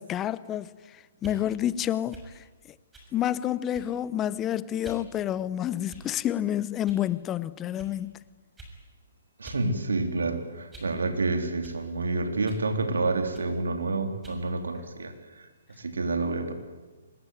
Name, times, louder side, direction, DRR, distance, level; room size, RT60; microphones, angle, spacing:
voice 1, 0.0-2.4 3.1-8.2, left 11 dB, 20° left, 0.8 m, -29 dB
sound 1, 1.1-1.4 2.1-2.3 2.9-3.1 3.7-4.0 4.8-5.1 5.9-6.3 6.9-7.1 7.8-7.9 8.6-8.8 9.4-9.7 10.0-11.0 11.6-11.8 12.5-12.7 13.3-13.5 14.2-14.4, right 2 dB, 10° right, 6.5 m, -46 dB
voice 2, 9.4-15.5 15.8-16.5, right 3 dB, 80° right, 3.6 m, -29 dB
25.5 x 21.0 x 9.4 m
hypercardioid pair, 135°, 0 cm